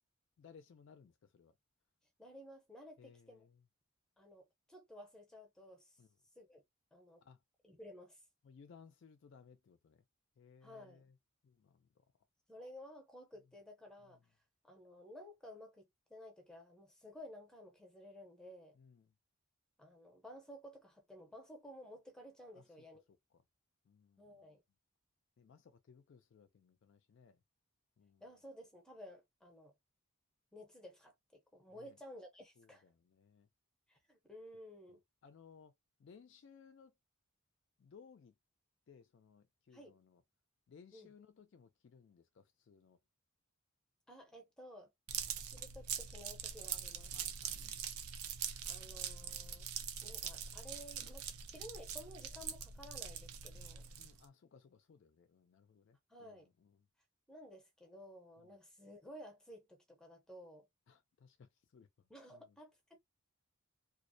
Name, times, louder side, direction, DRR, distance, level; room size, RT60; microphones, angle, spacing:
voice 1, 0.4-1.6 3.0-3.6 6.0-6.1 7.2-7.4 8.4-10.0 10.4-11.2 11.4-12.0 14.0-14.2 18.7-19.1 22.5-22.6 23.1-23.4 23.8-24.4 25.4-27.4 28.0-28.2 31.7-32.0 32.6-33.5 34.9-35.7 36.0-36.9 37.8-38.3 38.9-40.2 40.7-43.0 45.1-45.2 46.7-46.8 47.1-47.8 54.0-56.9 58.4-58.6 60.9-62.6, left 6 dB, 55° left, 0.3 m, -62 dB
voice 2, 2.2-3.4 4.2-6.0 6.4-6.6 6.9-7.2 7.6-8.2 10.6-11.1 12.5-14.2 14.6-18.8 19.8-23.0 24.2-24.6 28.2-29.7 30.5-32.9 33.9-35.0 39.7-39.9 40.9-41.1 44.1-44.9 45.5-47.1 48.6-49.7 50.0-53.9 56.1-56.5 57.3-60.7 62.1-63.0, equal, 5° left, 0.6 m, -54 dB
sound 1, 45.1-54.3, right 8 dB, 75° right, 0.4 m, -43 dB
2.3 x 2.0 x 2.6 m
head